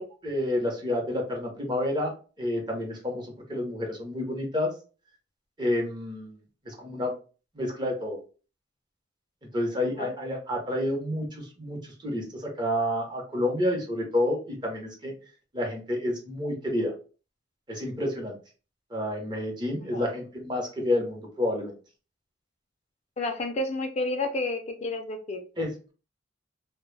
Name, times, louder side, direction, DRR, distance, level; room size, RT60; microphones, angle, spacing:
voice 1, 0.2-2.1 2.4-4.7 5.6-6.4 6.6-7.1 7.5-8.2 9.5-15.1 15.5-16.9 17.7-18.3 18.9-21.7 25.6-25.9, left 1 dB, 25° right, 0 dB, 0.7 m, -29 dB
voice 2, 23.2-25.4, left 2 dB, 35° left, 5 dB, 0.4 m, -30 dB
2.2 x 2.0 x 3.1 m, 0.36 s
head